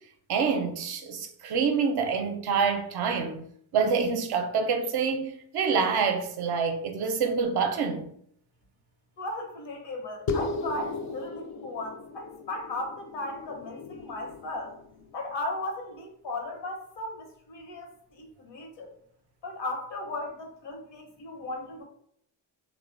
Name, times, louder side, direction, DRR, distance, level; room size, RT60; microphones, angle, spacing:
voice 1, 0.3-3.4 3.7-8.1, right 5 dB, 50° right, 0.6 m, -27 dB
voice 2, 9.2-14.8 15.1-18.9 19.4-21.8, left 2 dB, 60° left, 0.9 m, -36 dB
sound 1, 10.3-15.1, left 3 dB, 35° left, 0.4 m, -36 dB
2.9 x 2.1 x 2.4 m
hypercardioid pair, 40°, 49 cm